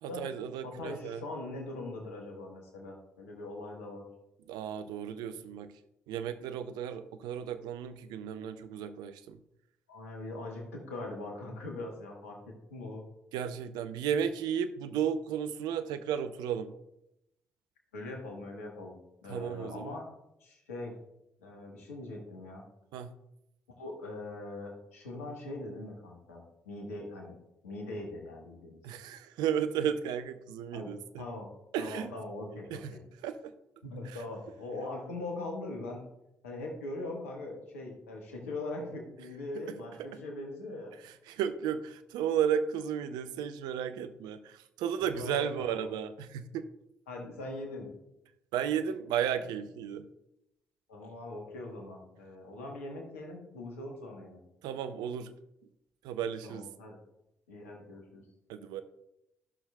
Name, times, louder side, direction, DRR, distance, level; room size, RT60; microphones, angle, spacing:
voice 1, 0.0-1.2 4.5-5.7 6.1-9.4 13.3-16.7 19.3-20.0 22.9-23.1 28.8-31.3 31.7-32.1 32.7-32.9 33.2-33.5 34.0-34.2 39.6-39.7 40.0-40.1 41.3-46.6 48.5-50.1 54.6-55.3 56.0-56.7 58.5-58.8, right 8 dB, 70° right, 12 dB, 0.5 m, -34 dB
voice 2, 0.6-4.0 9.9-13.0 17.9-20.0 20.4-20.9 21.4-22.6 23.8-27.4 27.6-28.8 30.7-30.9 31.2-31.5 31.8-33.0 33.8-36.0 36.4-40.9 45.2-46.0 47.1-47.9 50.9-54.4 56.4-57.0 57.5-58.2, left 2 dB, 85° left, 1 dB, 1.2 m, -41 dB
14.5 x 6.2 x 2.2 m, 0.87 s
figure-of-eight pair, 40°, 7 cm